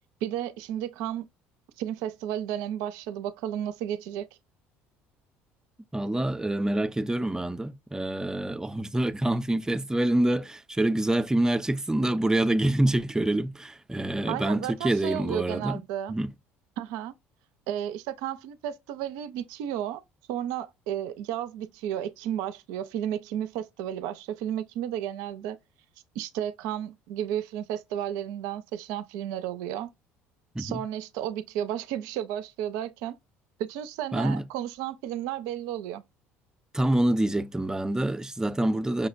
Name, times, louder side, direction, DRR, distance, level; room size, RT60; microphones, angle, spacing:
voice 1, 0.2-1.3 1.8-4.3 14.3-16.1 16.8-17.1 17.7-20.0 20.3-25.6 26.2-29.9 30.6-33.2 33.6-36.0, right 11 dB, 75° right, 0.4 m, -33 dB
voice 2, 5.9-15.8 16.1-16.3 30.5-30.8 34.1-34.4 36.7-39.1, right 1 dB, 10° right, 0.4 m, -26 dB
5.6 x 2.1 x 2.5 m
hypercardioid pair, 65°, 6 cm